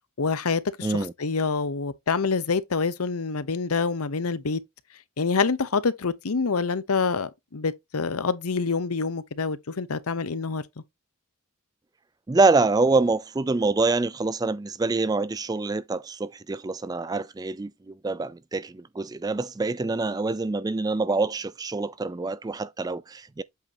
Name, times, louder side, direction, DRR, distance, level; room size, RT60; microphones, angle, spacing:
voice 1, 0.2-0.9 1.2-4.6 5.2-10.6, left 4 dB, 90° left, 0.8 m, -26 dB
voice 2, 0.8-1.1 12.3-23.4, right 3 dB, 15° right, 0.3 m, -25 dB
8.1 x 4.8 x 2.8 m
head